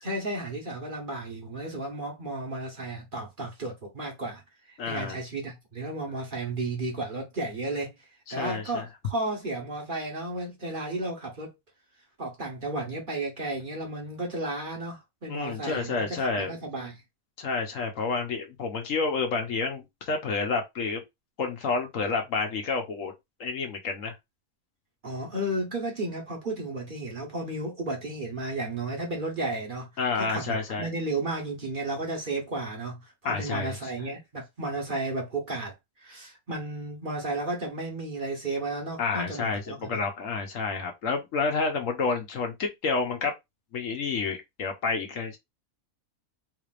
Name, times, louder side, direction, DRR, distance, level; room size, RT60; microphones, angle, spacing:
voice 1, 0.0-4.4 4.7-7.9 8.3-11.5 12.2-17.0 25.0-29.9 30.1-40.0, right 2 dB, 40° right, 1.2 m, -33 dB
voice 2, 4.8-5.2 8.3-8.8 15.3-16.5 17.4-21.0 21.4-23.1 23.4-24.1 30.0-30.9 33.2-33.7 39.0-43.3 43.7-45.4, left 4 dB, 65° left, 1.2 m, -29 dB
3.9 x 3.3 x 2.5 m
omnidirectional pair, 1.5 m